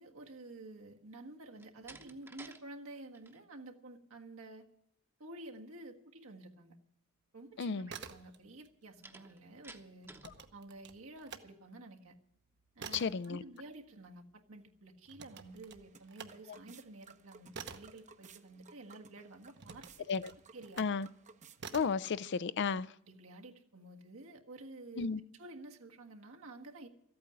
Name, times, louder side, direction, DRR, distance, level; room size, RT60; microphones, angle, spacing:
voice 1, 0.0-4.7 5.2-6.8 7.3-10.1 10.5-12.1 12.7-20.1 20.5-20.8 23.0-25.1 25.4-26.9, right 2 dB, 80° right, 3 dB, 1.6 m, -51 dB
Slam, 1.5-2.6 3.0-3.4 9.0-10.4, right 2 dB, 10° right, 0.9 m, -53 dB
voice 2, 7.6-7.9 12.9-13.4 16.5-16.6 20.1-20.3 20.8-21.1 21.7-22.9 25.0-25.2, left 5 dB, 55° left, 17 dB, 0.5 m, -33 dB
sound 1, 7.9-8.7 9.0-11.5 11.9-18.9 19.5-21.0 21.6-22.1, right 6 dB, 55° right, 1.0 m, -50 dB
sound 2, 15.3-22.4, right 5 dB, 35° right, 0.8 m, -60 dB
14.0 x 8.7 x 9.7 m, 0.75 s
head